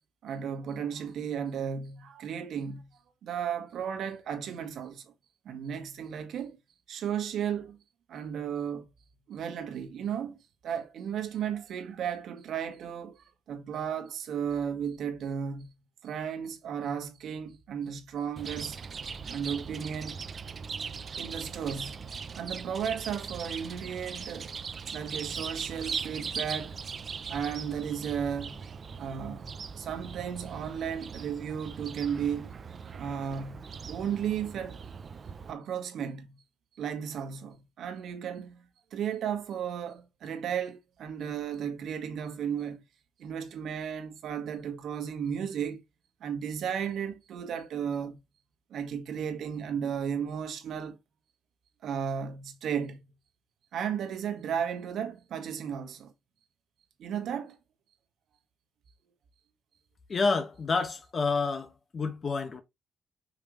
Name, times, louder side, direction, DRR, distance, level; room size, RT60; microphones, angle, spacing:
voice 1, 0.2-2.9 3.2-5.0 5.4-6.6 6.9-7.8 8.1-8.9 9.3-15.7 16.0-18.8 19.3-20.2 21.2-22.0 22.3-24.5 24.9-26.8 27.3-28.6 29.0-32.5 32.9-34.8 35.4-36.4 36.7-38.6 38.9-42.8 43.2-45.8 46.2-48.2 48.7-51.0 51.8-53.0 53.7-56.1 57.0-57.6, right 8 dB, 70° right, 1.6 m, -34 dB
Chirp tweet, 18.4-35.5, right 5 dB, 45° right, 0.6 m, -40 dB
voice 2, 60.1-62.6, left 4 dB, 40° left, 1.6 m, -29 dB
5.6 x 5.2 x 3.2 m
cardioid pair, 90°, 0 cm